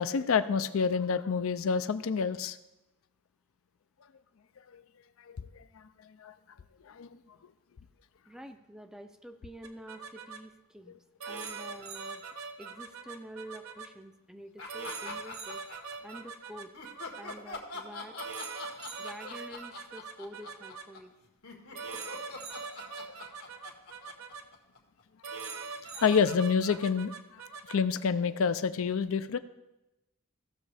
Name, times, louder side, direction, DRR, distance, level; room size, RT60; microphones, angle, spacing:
voice 1, 0.0-2.6 4.7-4.8 5.3-5.6 6.2-6.3 6.9-7.2 11.3-11.4 25.9-27.4 27.7-29.4, left 6 dB, 65° left, 12 dB, 0.4 m, -28 dB
voice 2, 8.3-10.9 11.3-12.2 12.6-15.6 16.0-16.7 17.1-18.2 19.0-21.1, right 1 dB, 5° right, 7 dB, 0.5 m, -47 dB
sound 1, 9.6-10.4 11.2-13.9 14.7-17.4 18.2-20.8 21.7-24.4 25.2-27.8, right 5 dB, 70° right, 0.7 m, -42 dB
sound 2, 14.6-16.2 16.7-25.0, left 4 dB, 85° left, 1.5 m, -44 dB
16.0 x 6.2 x 3.4 m, 0.95 s
head